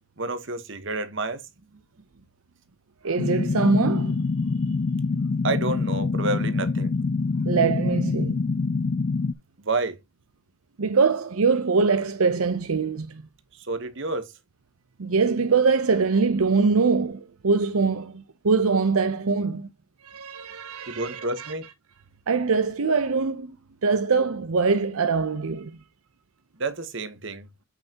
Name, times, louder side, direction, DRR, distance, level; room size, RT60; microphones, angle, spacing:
voice 1, 0.2-1.8 5.4-6.9 9.6-10.0 13.5-14.3 20.9-21.7 26.6-27.5, right 2 dB, 55° right, 1.2 m, -29 dB
voice 2, 3.0-4.2 7.4-8.4 10.8-13.2 15.0-19.7 20.0-21.5 22.3-23.6 23.8-25.8, right 4 dB, 75° right, 0.7 m, -23 dB
sound 1, 3.2-9.3, left 4 dB, 40° left, 0.4 m, -25 dB
8.3 x 5.6 x 2.9 m
head